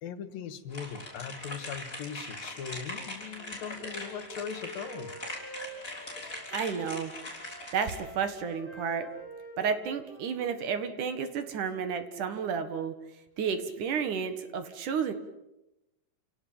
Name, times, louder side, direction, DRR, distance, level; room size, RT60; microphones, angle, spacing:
voice 1, 0.0-5.1, left 7 dB, 85° left, 11 dB, 3.4 m, -40 dB
sound 1, 0.7-8.0, left 2 dB, 20° left, 6.4 m, -41 dB
Wind instrument woodwind instrument, 3.3-6.9 7.3-10.9, right 1 dB, 40° right, 8.7 m, -47 dB
voice 2, 6.5-7.1 7.7-9.1 9.6-13.0 13.4-15.1, right 6 dB, 65° right, 9 dB, 3.1 m, -31 dB
29.0 x 18.0 x 8.8 m, 0.92 s
omnidirectional pair, 3.9 m